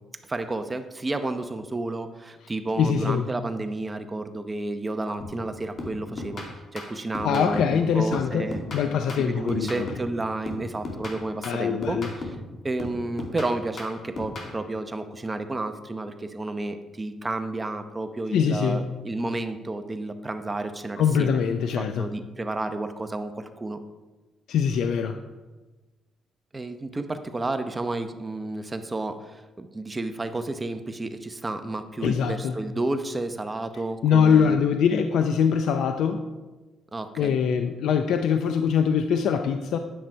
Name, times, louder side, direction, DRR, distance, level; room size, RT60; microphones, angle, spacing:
voice 1, 0.3-6.4 6.7-8.6 9.2-12.4 12.6-21.4 21.8-23.8 26.5-34.6 36.9-37.4, right 2 dB, 20° right, 8 dB, 0.8 m, -31 dB
voice 2, 2.8-3.2 7.2-9.9 11.4-12.1 18.3-18.8 21.0-22.1 24.5-25.2 32.0-32.6 34.0-36.2 37.2-39.8, left 7 dB, 80° left, 7 dB, 0.5 m, -23 dB
sound 1, 5.2-5.5 5.8-7.8 8.1-10.2 10.5-12.5 12.8-14.5, left 2 dB, 50° left, 2.4 m, -36 dB
10.0 x 7.5 x 4.5 m, 1.2 s
cardioid pair, 90°, 0 cm